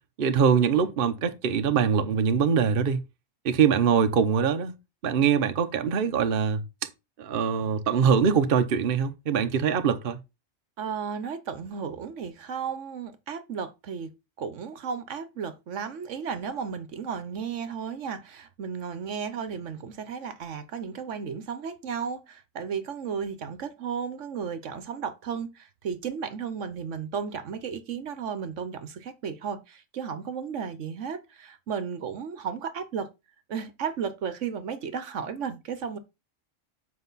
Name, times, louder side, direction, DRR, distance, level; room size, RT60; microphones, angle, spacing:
voice 1, 0.2-3.0 3.4-4.7 5.0-6.9 7.2-10.2, right 7 dB, 50° right, 0.9 m, -23 dB
voice 2, 10.8-33.1 33.5-36.0, right 6 dB, 70° right, 1.2 m, -34 dB
7.7 x 5.3 x 4.0 m
omnidirectional pair, 1.3 m